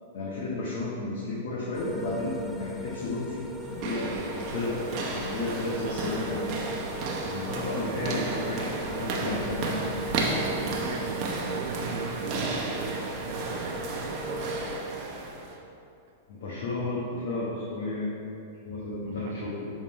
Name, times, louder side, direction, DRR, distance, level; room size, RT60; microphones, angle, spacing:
voice 1, 0.1-3.4 3.7-4.8 5.1-6.5 7.2-9.8 16.3-18.1 18.6-19.7, left 2 dB, 70° left, -6 dB, 1.2 m, -32 dB
sound 1, 1.7-14.8, left 1 dB, 5° left, 0.5 m, -39 dB
sound 2, 3.6-15.6, right 3 dB, 45° right, 0.9 m, -33 dB
voice 2, 5.6-6.0 7.2-8.1 10.4-14.6 19.0-19.4, right 7 dB, 65° right, 3 dB, 0.4 m, -39 dB
7.1 x 3.7 x 4.3 m, 2.7 s
hypercardioid pair, 125°, 0 cm